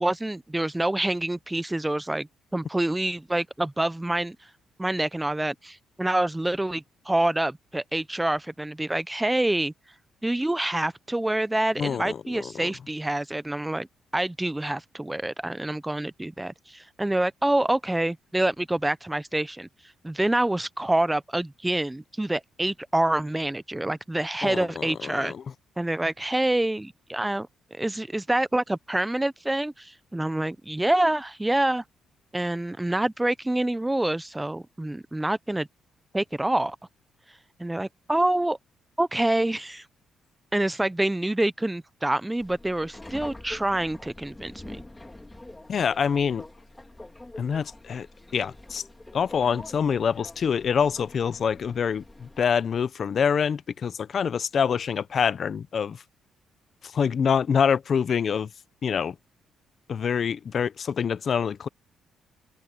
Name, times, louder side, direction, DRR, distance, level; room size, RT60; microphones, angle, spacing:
voice 1, 0.0-2.3 2.5-4.4 4.8-9.7 10.2-13.9 14.1-19.7 20.0-25.3 25.8-31.8 32.3-35.7 36.1-36.8 37.6-38.6 39.0-39.8 40.5-44.8, right 1 dB, 10° right, 0.7 m, -26 dB
voice 2, 11.8-12.7 24.4-25.4 45.7-46.4 47.4-48.1 48.3-48.8 49.1-56.0 56.8-58.5 58.8-59.2 59.9-61.7, left 7 dB, 50° left, 0.8 m, -26 dB
Subway metro underground, 42.4-52.4, left 2 dB, 15° left, 2.5 m, -45 dB
open air
cardioid pair, 90°, 0 cm